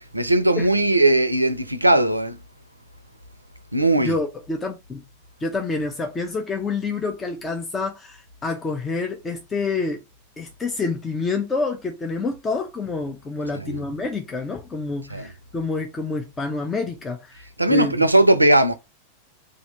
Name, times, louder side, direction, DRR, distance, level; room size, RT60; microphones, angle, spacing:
voice 1, 0.1-2.4 3.7-4.2 13.5-13.8 15.1-15.3 17.6-18.7, right 1 dB, 85° right, 0.4 m, -18 dB
voice 2, 4.0-5.0 5.4-10.0 10.4-18.0, left 3 dB, 15° left, 0.6 m, -28 dB
2.8 x 2.5 x 4.3 m
figure-of-eight pair, 90°, 0 cm